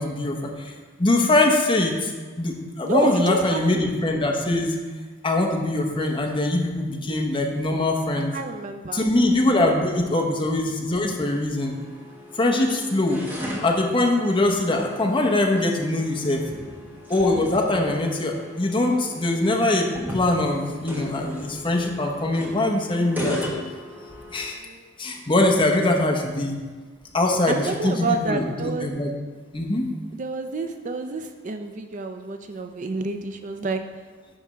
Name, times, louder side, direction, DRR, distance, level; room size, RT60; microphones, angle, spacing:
voice 1, 0.0-2.1 2.4-4.7 5.2-8.3 8.9-11.7 12.3-13.2 13.6-16.4 17.1-23.4 24.3-24.6 25.0-26.6 27.1-29.1 29.5-29.9, left 2 dB, 25° left, 1 dB, 1.0 m, -22 dB
voice 2, 2.8-3.9 8.3-9.1 9.7-10.3 16.6-17.0 24.6-24.8 27.5-28.9 30.1-33.8, right 3 dB, 40° right, 6 dB, 0.5 m, -29 dB
sound 1, 11.6-24.5, left 1 dB, 10° right, 1.5 m, -37 dB
10.0 x 3.5 x 6.2 m, 1.4 s
head